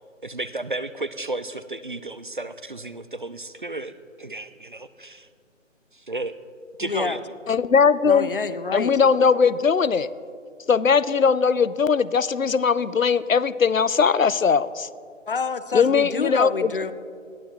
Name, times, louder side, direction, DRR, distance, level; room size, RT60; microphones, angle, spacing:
voice 1, 0.2-5.3 5.9-6.4 6.8-7.2, right 2 dB, 40° right, 13 dB, 0.4 m, -33 dB
voice 2, 6.8-7.2 8.0-9.0 15.3-16.9, left 4 dB, 45° left, 14 dB, 0.7 m, -27 dB
voice 3, 7.5-8.3 8.7-10.1 10.7-14.9 15.7-16.7, left 6 dB, 90° left, 18 dB, 0.7 m, -20 dB
20.5 x 14.5 x 3.0 m, 2.3 s
figure-of-eight pair, 150°, 39 cm